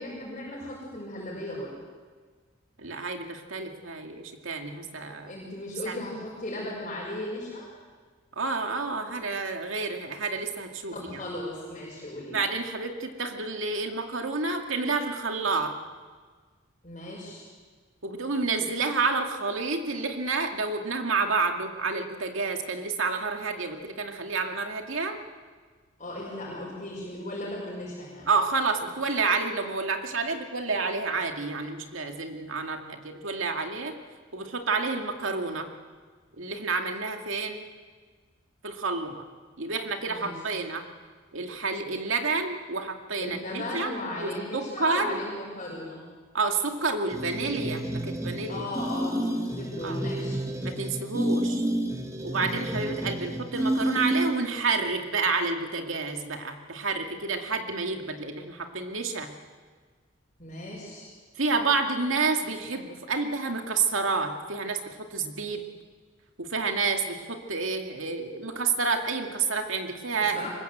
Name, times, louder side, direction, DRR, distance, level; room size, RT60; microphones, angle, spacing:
voice 1, 0.0-1.7 5.2-7.6 10.9-12.4 16.8-17.4 26.0-28.3 40.1-40.3 43.2-46.0 48.5-50.4 60.4-61.1 70.3-70.5, left 1 dB, 40° left, -5 dB, 5.7 m, -36 dB
voice 2, 2.8-5.4 5.9-6.0 8.4-11.2 12.3-15.8 18.0-25.2 28.3-34.0 34.3-35.7 36.4-37.7 38.6-39.3 39.6-40.9 41.3-43.9 44.2-45.3 46.3-48.7 49.8-50.0 50.6-51.6 52.2-59.3 61.4-65.7 66.4-70.5, right 4 dB, 80° right, 4 dB, 2.3 m, -29 dB
sound 1, 47.1-54.6, right 1 dB, 15° right, 1.4 m, -30 dB
23.5 x 20.5 x 8.0 m, 1.5 s
head